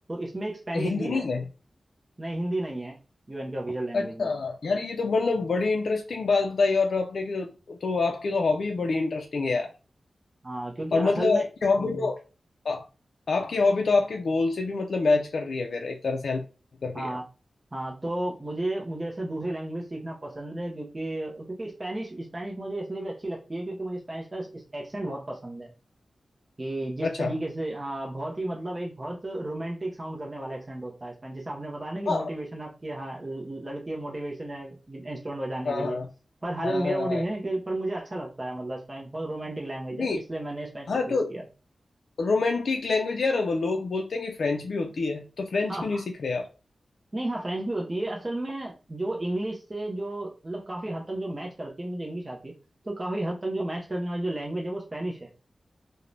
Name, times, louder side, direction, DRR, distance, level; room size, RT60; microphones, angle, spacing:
voice 1, 0.1-1.3 2.2-3.0 3.3-4.3 10.4-11.4 11.8-12.1 16.9-17.2 17.7-25.7 26.6-36.0 36.4-41.4 45.7-46.0 47.1-52.5 52.8-55.3, right 1 dB, 25° right, 0.5 m, -33 dB
voice 2, 0.7-1.4 3.9-9.7 10.9-12.2 12.6-12.8 13.3-16.4 16.8-17.1 27.0-27.3 32.1-32.3 35.6-36.1 36.6-37.2 40.0-40.2 40.9-41.3 42.2-46.5, left 3 dB, 70° left, 0.3 m, -26 dB
2.5 x 2.0 x 3.0 m
wide cardioid pair, 120°, 0 cm